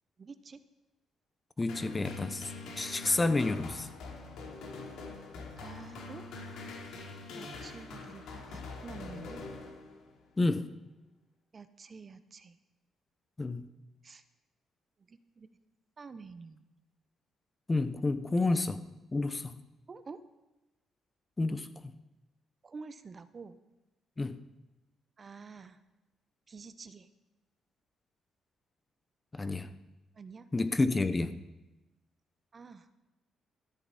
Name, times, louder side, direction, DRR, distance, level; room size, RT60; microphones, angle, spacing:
voice 1, 0.2-0.6 5.6-6.3 7.3-9.5 11.5-12.6 14.0-14.2 15.1-15.5 16.0-16.6 18.4-18.5 19.9-20.2 22.6-23.6 25.2-25.8 26.5-27.1 30.1-30.5 32.5-32.9, right 4 dB, 35° right, 12 dB, 0.8 m, -48 dB
voice 2, 1.6-3.9 10.4-10.7 13.4-13.7 17.7-18.8 19.1-19.6 21.4-21.9 24.2-24.4 29.3-29.7 30.5-31.4, left 2 dB, 25° left, 12 dB, 0.7 m, -30 dB
sound 1, 1.7-10.2, left 3 dB, 85° left, 2.6 m, -44 dB
13.5 x 11.5 x 4.2 m, 1.0 s
cardioid pair, 90°, 0 cm